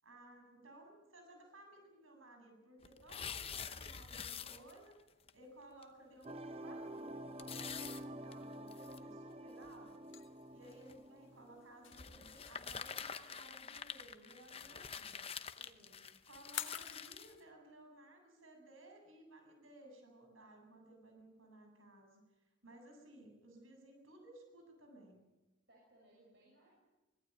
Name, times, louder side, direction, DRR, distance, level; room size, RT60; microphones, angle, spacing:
voice 1, 0.0-4.9 5.3-10.1 10.5-15.3 16.3-22.2 22.6-25.2, right 1 dB, 90° right, 3 dB, 7.9 m, -58 dB
sound 1, 2.8-5.0 5.3-5.4 5.8-5.9 6.2-6.3 7.4-9.0 9.7-9.8 10.7-10.9 11.9-17.4, left 7 dB, 30° left, 0.9 m, -47 dB
voice 2, 3.2-3.9 15.6-16.2 25.7-26.7, right 1 dB, 55° right, -3 dB, 7.0 m, -66 dB
sound 2, 6.2-12.1, right 1 dB, 30° right, 0.9 m, -49 dB
sound 3, 10.1-17.2, left 11 dB, 70° left, 1.6 m, -49 dB
25.0 x 17.5 x 9.3 m, 1.1 s
head